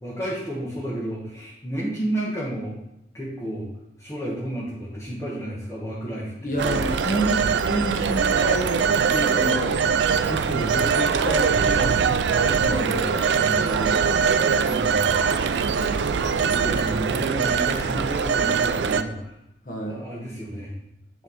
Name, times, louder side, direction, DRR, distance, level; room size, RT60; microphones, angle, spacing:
voice 1, 0.0-2.8 3.1-3.7 4.0-6.8 12.6-13.8 14.6-15.4 16.5-19.4 19.8-20.7, right 1 dB, 15° left, -7 dB, 1.2 m, -32 dB
voice 2, 6.4-8.8 9.1-9.8 10.3-12.0 12.4-13.3 13.6-15.0 15.7-16.2 19.6-20.1, right 1 dB, 45° left, 1 dB, 1.2 m, -30 dB
Telephone, 6.6-19.0, right 6 dB, 80° right, 0.4 m, -22 dB
9.2 x 3.3 x 4.2 m, 0.82 s
head